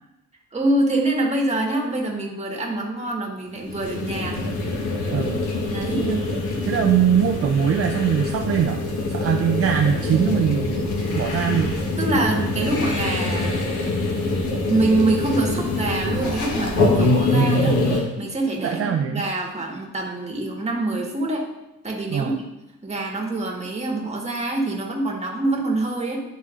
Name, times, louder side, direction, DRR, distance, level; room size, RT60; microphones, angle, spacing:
voice 1, 0.5-4.5 5.7-6.1 12.0-13.6 14.7-21.4 21.8-22.3 22.8-26.2, right 2 dB, 20° right, -1 dB, 1.5 m, -25 dB
sound 1, 3.6-18.0, left 2 dB, 85° left, 1.4 m, -24 dB
voice 2, 5.1-5.4 5.9-6.2 6.7-8.8 9.1-10.9 11.1-11.8 18.6-19.3 22.1-22.4, right 8 dB, 50° right, 4 dB, 0.5 m, -22 dB
10.5 x 4.1 x 2.5 m, 0.95 s
cardioid pair, 90°, 30 cm